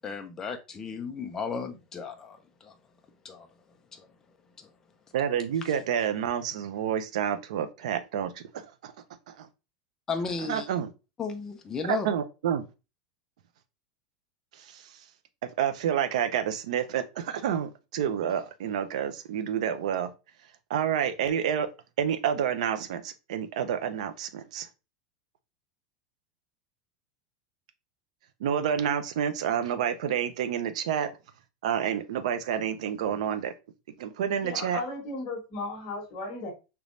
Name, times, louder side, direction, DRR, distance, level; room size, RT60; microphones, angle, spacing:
voice 1, 0.0-5.1 5.6-5.8 10.1-10.7 11.2-12.1, left 5 dB, 15° left, 0.4 m, -36 dB
voice 2, 5.1-8.9 9.3-9.5 10.5-10.9 11.9-12.7 14.5-15.0 15.4-20.1 20.7-21.7 22.0-24.7 28.4-31.1 31.6-33.5 34.0-34.8, right 8 dB, 80° right, 0.5 m, -29 dB
voice 3, 34.4-36.5, left 2 dB, 35° left, 1.4 m, -35 dB
3.4 x 3.0 x 2.5 m
supercardioid pair, 165°, 4 cm